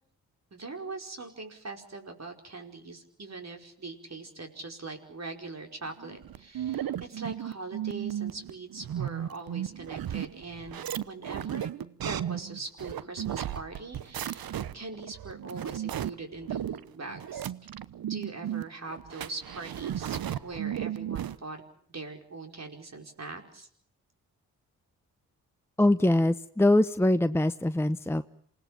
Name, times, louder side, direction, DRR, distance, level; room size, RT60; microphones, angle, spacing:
voice 1, 0.5-11.7 12.0-17.5 18.1-21.6 21.9-23.7, right 3 dB, 45° right, 3 dB, 5.1 m, -42 dB
sound 1, 6.0-21.4, right 10 dB, 65° right, 1.0 m, -35 dB
voice 2, 25.8-28.2, left 1 dB, 5° left, 10 dB, 0.9 m, -23 dB
28.0 x 18.5 x 7.4 m, 0.63 s
supercardioid pair, 40°, 38 cm